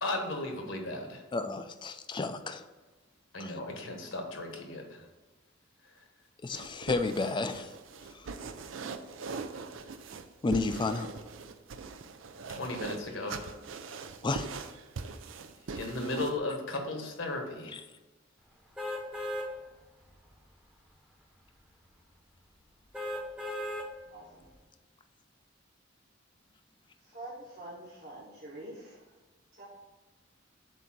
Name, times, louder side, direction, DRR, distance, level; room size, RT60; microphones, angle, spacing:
voice 1, 0.0-1.2 3.3-5.1 12.5-13.5 15.7-17.8, left 2 dB, 75° left, 3 dB, 1.3 m, -35 dB
voice 2, 1.3-2.6 3.4-3.5 6.4-7.7 10.4-11.1 14.2-14.5, left 3 dB, 25° left, 9 dB, 0.4 m, -31 dB
sound 1, 6.5-16.4, right 4 dB, 75° right, 0.5 m, -41 dB
sound 2, 18.8-19.5 20.0-20.1 22.9-23.9 24.4-24.5, left 1 dB, 5° right, 0.9 m, -36 dB
voice 3, 24.1-24.4 27.0-29.0 29.5-29.6, right 1 dB, 50° right, -7 dB, 1.6 m, -46 dB
7.9 x 2.7 x 6.0 m, 1.2 s
head